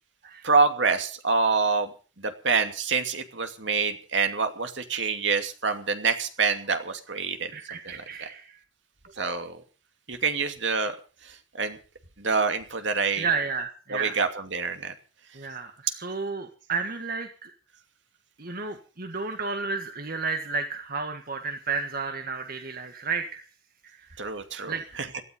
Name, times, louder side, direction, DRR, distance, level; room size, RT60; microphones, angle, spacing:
voice 1, 0.4-8.3 9.2-9.6 10.1-10.9 11.2-11.8 12.2-13.3 13.9-14.9 24.2-25.1, right 4 dB, 70° right, 6 dB, 2.6 m, -26 dB
voice 2, 7.5-8.6 13.2-14.2 15.3-17.5 18.4-23.4 23.8-24.2 24.7-24.8, right 4 dB, 50° right, 5 dB, 1.7 m, -32 dB
17.5 x 13.5 x 5.3 m, 0.36 s
head